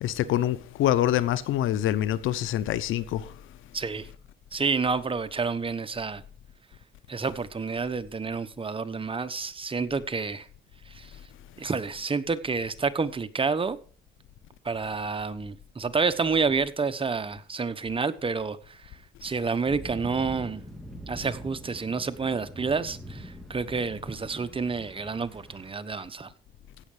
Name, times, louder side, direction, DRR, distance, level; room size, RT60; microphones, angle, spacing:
voice 1, 0.0-3.3, left 12 dB, 85° left, 0.9 m, -25 dB
voice 2, 3.7-4.1 4.5-6.2 7.1-10.5 10.9-11.1 11.6-13.8 14.6-20.6 21.1-26.3, right 4 dB, 25° right, 1.0 m, -29 dB
sound 1, 19.7-25.7, equal, ahead, 3.3 m, -43 dB
16.5 x 6.6 x 5.0 m
cardioid pair, 90°, 20 cm